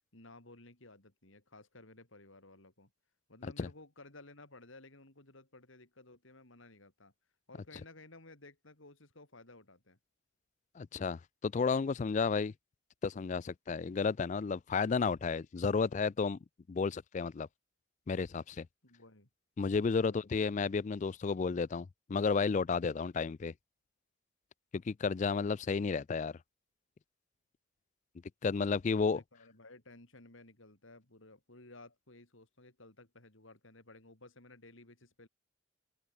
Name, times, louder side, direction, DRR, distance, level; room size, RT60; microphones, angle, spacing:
voice 1, 0.1-2.9 3.3-7.1 7.5-10.0 18.8-19.3 19.9-20.3 28.7-35.3, left 2 dB, 70° left, 3.7 m, -56 dB
voice 2, 10.8-12.5 13.0-16.4 16.7-17.5 18.1-18.7 19.6-23.5 24.7-26.4 28.4-29.2, left 5 dB, 35° left, 0.3 m, -32 dB
head